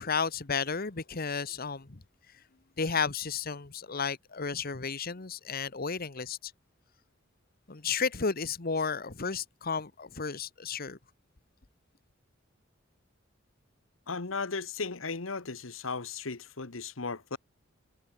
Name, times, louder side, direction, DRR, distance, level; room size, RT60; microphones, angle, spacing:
voice 1, 0.0-2.0 2.8-6.5 7.7-11.0, left 5 dB, 50° left, 1.2 m, -33 dB
voice 2, 14.1-17.4, left 4 dB, 85° left, 1.4 m, -36 dB
head